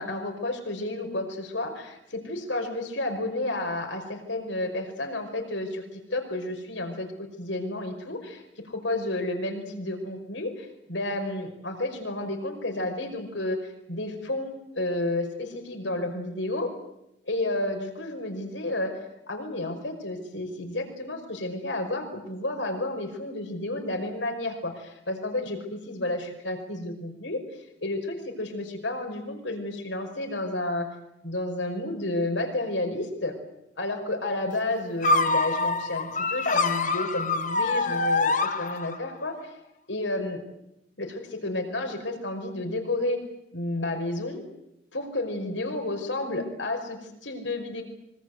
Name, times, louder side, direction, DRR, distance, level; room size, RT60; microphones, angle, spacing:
voice 1, 0.0-16.7 17.3-19.0 19.3-27.4 27.8-30.9 31.2-33.3 33.8-39.5 39.9-40.4 41.0-43.2 43.5-44.4 44.9-47.8, left 2 dB, 80° left, 4 dB, 5.4 m, -31 dB
sound 1, 35.0-39.2, left 3 dB, 40° left, 1.5 m, -25 dB
25.5 x 23.5 x 8.0 m, 0.83 s
head